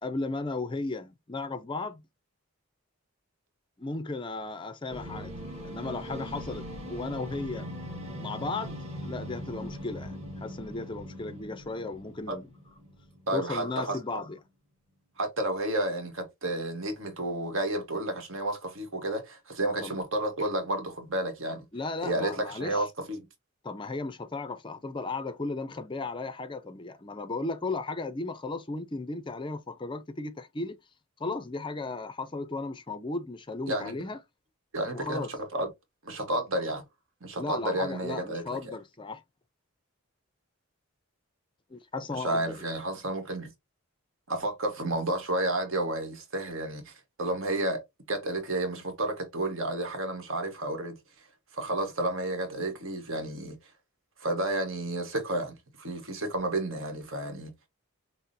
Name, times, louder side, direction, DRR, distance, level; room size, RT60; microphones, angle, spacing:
voice 1, 0.0-2.0 3.8-5.3 5.6-7.7 8.2-12.5 13.3-14.4 19.8-20.0 21.7-22.9 23.6-30.8 31.2-34.2 34.9-35.3 37.4-39.2 41.7-42.7, left 3 dB, 20° left, 0.4 m, -35 dB
sound 1, 4.9-13.5, equal, 30° right, 1.3 m, -40 dB
voice 2, 13.3-14.0 15.2-21.6 22.0-23.3 33.7-33.9 34.7-35.7 36.0-36.8 37.2-38.6 42.1-43.5 44.3-47.8 48.1-51.0 51.5-53.6 54.2-57.5, right 1 dB, 65° right, 1.2 m, -31 dB
5.8 x 2.0 x 2.6 m
head